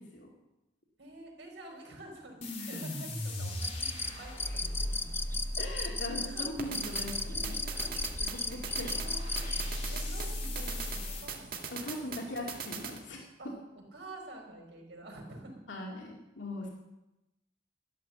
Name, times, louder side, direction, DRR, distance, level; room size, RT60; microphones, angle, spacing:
voice 1, 1.0-2.4 2.6-5.4 6.2-6.7 7.6-7.9 8.2-9.6 9.9-12.1 13.4-13.5 13.9-15.6, right 1 dB, 75° right, 1 dB, 4.5 m, -49 dB
sound 1, 2.4-11.3, left 1 dB, 40° left, 3.1 m, -38 dB
voice 2, 2.6-3.0 5.6-7.7 8.3-8.9 11.7-13.2 15.7-16.7, left 1 dB, 85° left, -1 dB, 2.3 m, -40 dB
sound 2, 3.6-9.7, left 3 dB, 10° left, 0.7 m, -36 dB
sound 3, 6.6-13.0, right 6 dB, 55° right, 2.0 m, -42 dB
12.5 x 11.5 x 7.5 m, 0.98 s
head